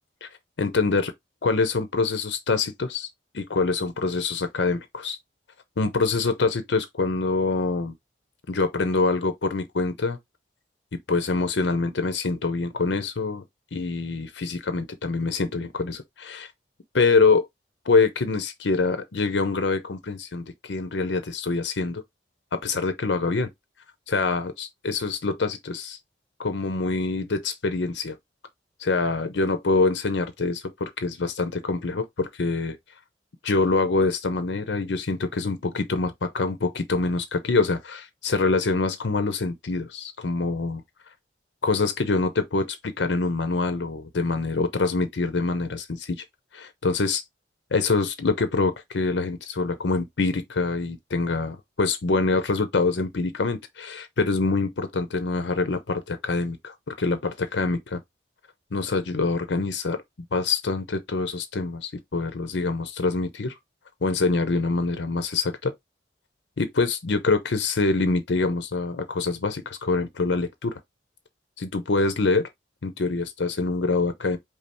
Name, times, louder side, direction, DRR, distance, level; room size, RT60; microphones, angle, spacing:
voice 1, 0.6-1.1 1.4-3.1 3.3-5.2 5.8-7.9 8.5-10.2 11.1-13.4 13.7-16.5 16.9-17.5 17.9-22.0 22.5-23.5 24.1-26.0 26.4-28.2 28.8-32.8 33.4-40.8 41.6-46.2 46.5-47.2 47.7-58.0 58.7-60.0 60.3-63.5 64.0-65.7 66.6-70.7 71.6-72.5 72.8-74.4, left 3 dB, 80° left, 0.7 m, -25 dB
5.2 x 2.0 x 4.2 m
head